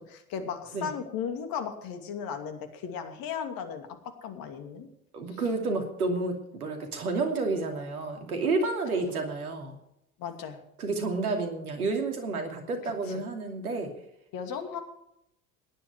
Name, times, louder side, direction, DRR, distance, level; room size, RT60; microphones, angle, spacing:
voice 1, 0.0-3.9 4.2-4.9 5.3-5.4 10.2-10.6 12.8-13.2 14.3-14.8, left 7 dB, 50° left, 7 dB, 2.7 m, -36 dB
voice 2, 5.1-9.8 10.8-13.9, right 3 dB, 80° right, 4 dB, 2.7 m, -30 dB
17.5 x 10.5 x 4.9 m, 0.79 s
figure-of-eight pair, 65°, 43 cm